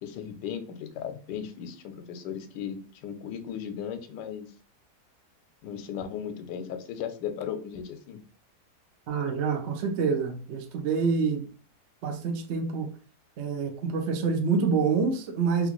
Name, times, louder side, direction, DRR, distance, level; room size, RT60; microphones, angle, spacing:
voice 1, 0.0-4.5 5.6-8.2, left 8 dB, 85° left, 8 dB, 1.2 m, -36 dB
voice 2, 9.1-11.5 12.0-12.9 13.4-15.7, right 5 dB, 70° right, 6 dB, 0.6 m, -27 dB
3.5 x 2.4 x 2.9 m, 0.40 s
omnidirectional pair, 1.8 m